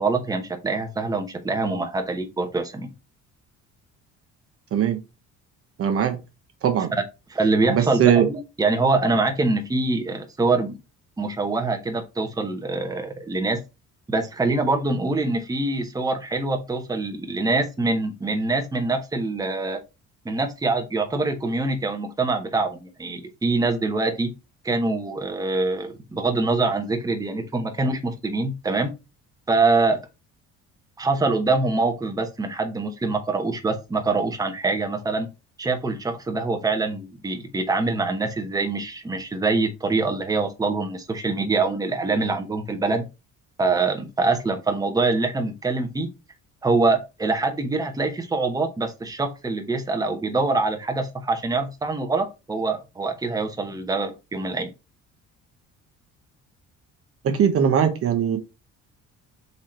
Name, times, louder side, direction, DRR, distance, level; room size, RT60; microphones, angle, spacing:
voice 1, 0.0-2.9 7.3-10.8 11.2-13.6 14.1-19.8 20.2-24.3 24.6-28.9 29.5-30.0 31.0-35.3 35.6-43.0 43.6-46.1 46.6-54.7, right 3 dB, 10° right, 5 dB, 0.9 m, -24 dB
voice 2, 5.8-6.2 6.6-6.9 7.7-8.3 57.2-58.4, right 8 dB, 50° right, 6 dB, 0.8 m, -20 dB
4.0 x 3.0 x 4.2 m, 0.27 s
cardioid pair, 100°, 30 cm